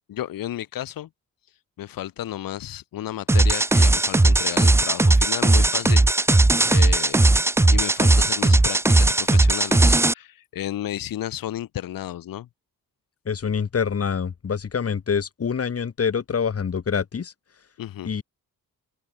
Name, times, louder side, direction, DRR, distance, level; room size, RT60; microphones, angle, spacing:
voice 1, 0.1-1.1 1.8-7.2 7.7-12.5 17.8-18.1, left 12 dB, 65° left, 1.0 m, -33 dB
sound 1, 3.3-10.1, right 2 dB, 5° right, 0.5 m, -17 dB
voice 2, 13.3-17.3 18.0-18.2, left 6 dB, 40° left, 1.7 m, -26 dB
open air
cardioid pair, 85°, 37 cm